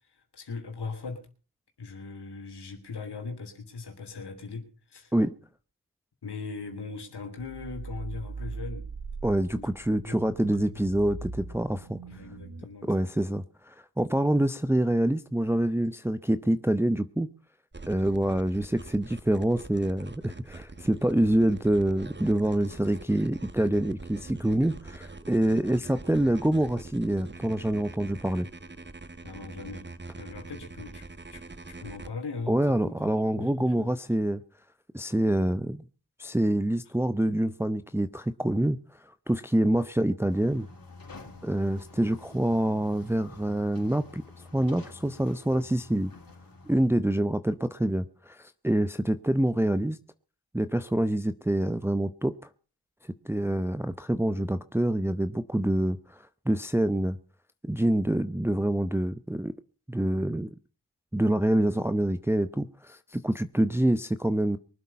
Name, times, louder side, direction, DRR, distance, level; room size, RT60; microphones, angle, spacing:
voice 1, 0.3-1.3 1.8-5.1 6.2-8.9 9.5-9.7 10.0-10.2 10.5-10.7 12.1-13.3 29.2-31.0 31.3-33.9, left 4 dB, 85° left, 3.2 m, -40 dB
sound 1, 7.4-12.6, right 3 dB, 85° right, 2.7 m, -40 dB
voice 2, 9.2-12.0 12.8-17.3 17.9-28.5 32.5-34.4 34.9-35.8 36.2-38.8 39.0-40.7 41.4-44.2 44.5-46.1 46.7-50.0 50.5-52.3 53.2-57.2 57.6-59.5 59.9-60.5 61.1-64.6, right 1 dB, 5° right, 0.7 m, -26 dB
sound 2, 17.7-32.1, right 3 dB, 30° right, 1.3 m, -44 dB
sound 3, 40.3-46.9, left 3 dB, 60° left, 4.5 m, -49 dB
23.5 x 8.2 x 5.6 m
cardioid pair, 40°, 39 cm